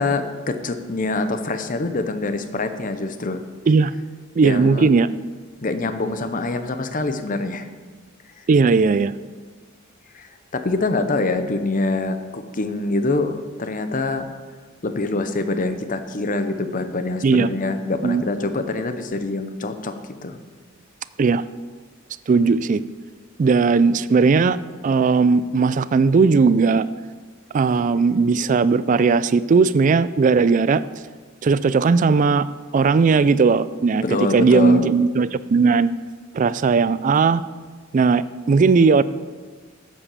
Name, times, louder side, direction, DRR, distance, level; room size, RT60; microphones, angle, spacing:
voice 1, 0.0-3.4 4.4-4.9 5.6-7.7 10.1-14.3 14.8-19.9 20.2-20.4 34.0-34.9, left 3 dB, 40° left, 9 dB, 0.7 m, -25 dB
voice 2, 4.4-5.1 8.5-9.1 17.2-17.5 18.0-18.2 21.2-21.4 22.3-22.8 23.4-24.6 24.8-26.9 27.5-30.8 31.4-32.5 32.7-35.9 36.3-37.4 37.9-39.0, right 4 dB, 40° right, 16 dB, 0.3 m, -17 dB
8.5 x 7.4 x 6.9 m, 1.4 s
head